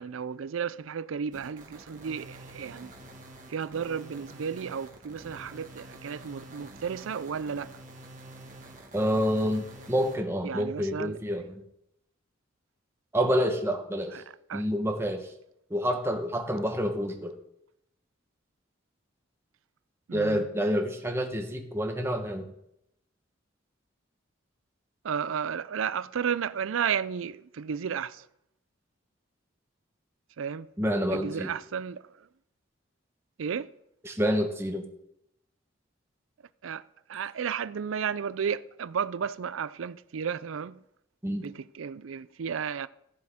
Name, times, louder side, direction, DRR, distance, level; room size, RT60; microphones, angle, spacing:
voice 1, 0.0-2.9 3.5-7.7 10.4-11.2 14.1-14.2 14.5-14.6 20.1-20.5 25.0-28.3 30.4-30.7 31.1-32.0 33.4-33.7 36.6-36.8 37.1-40.8 41.4-42.9, right 7 dB, 80° right, 0.4 m, -33 dB
sound 1, 1.3-10.2, right 1 dB, 40° right, 1.6 m, -48 dB
voice 2, 8.9-11.6 13.1-14.2 14.5-15.3 15.7-17.3 20.1-22.5 30.8-31.5 34.0-34.8 41.2-41.5, equal, 15° right, 1.1 m, -28 dB
14.5 x 7.5 x 3.6 m
head